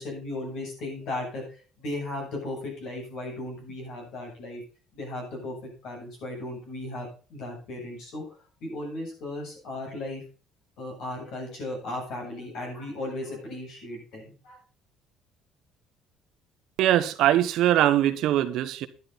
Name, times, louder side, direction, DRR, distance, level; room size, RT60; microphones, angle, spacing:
voice 1, 0.0-1.4 1.8-4.6 4.9-8.2 8.6-10.2 10.8-14.6, left 1 dB, 65° left, 7.8 m, -36 dB
voice 2, 16.8-18.9, right 12 dB, 65° right, 1.1 m, -22 dB
11.0 x 11.0 x 4.1 m
cardioid pair, 150°, 0 cm